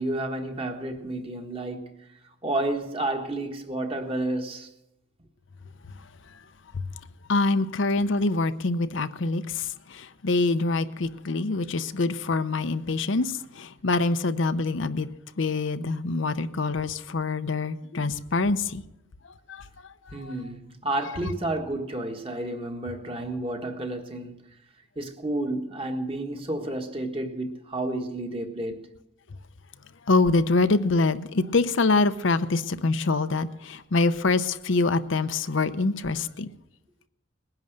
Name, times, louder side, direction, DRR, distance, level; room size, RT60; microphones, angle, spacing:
voice 1, 0.0-2.1 2.4-4.7 20.1-24.6 24.9-28.9, right 1 dB, 25° right, 1.5 m, -31 dB
voice 2, 7.3-15.1 15.4-18.8 19.5-19.6 20.1-20.3 30.1-36.5, left 3 dB, 70° left, 0.7 m, -25 dB
20.0 x 10.5 x 6.6 m
head